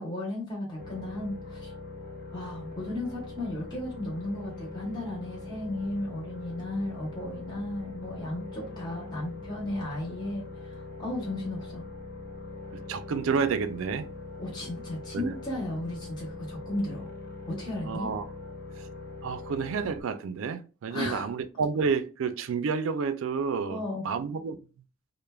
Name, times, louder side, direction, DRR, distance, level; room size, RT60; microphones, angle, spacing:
voice 1, 0.0-1.7 2.3-11.8 14.4-17.1 17.5-18.1 20.9-21.3 23.7-24.0, left 1 dB, 20° left, 0.8 m, -35 dB
sound 1, 0.8-20.0, left 3 dB, 50° left, 0.6 m, -42 dB
voice 2, 12.7-14.1 15.1-15.3 17.9-18.2 18.8-18.9 19.2-24.6, right 5 dB, 75° right, 0.3 m, -30 dB
3.1 x 2.0 x 2.2 m
head